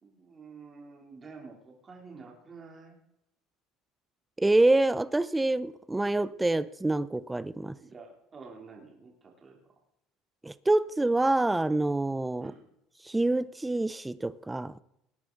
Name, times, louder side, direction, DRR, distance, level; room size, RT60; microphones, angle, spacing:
voice 1, 0.0-3.0 7.8-9.6 12.4-12.7, right 4 dB, 30° right, 3.3 m, -49 dB
voice 2, 4.4-7.7 10.4-12.5 13.0-14.7, right 2 dB, 10° right, 0.7 m, -26 dB
19.5 x 10.0 x 4.0 m
supercardioid pair, 95°, 0 cm